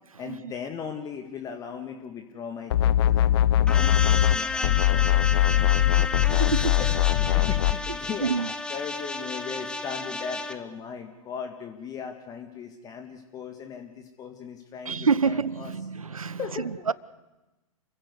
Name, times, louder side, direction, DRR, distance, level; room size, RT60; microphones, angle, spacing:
voice 1, 0.2-6.3 6.8-15.7 16.3-16.9, left 6 dB, 20° left, 5 dB, 1.8 m, -38 dB
sound 1, 2.7-4.4 4.6-7.8, left 13 dB, 45° left, 0.8 m, -21 dB
sound 2, 3.7-10.6, left 3 dB, 5° left, 1.0 m, -32 dB
voice 2, 6.4-6.7 8.2-8.5 14.9-16.4 16.9-17.0, right 5 dB, 75° right, 21 dB, 0.8 m, -26 dB
29.0 x 15.5 x 8.1 m, 1.1 s
figure-of-eight pair, 110°, 18 cm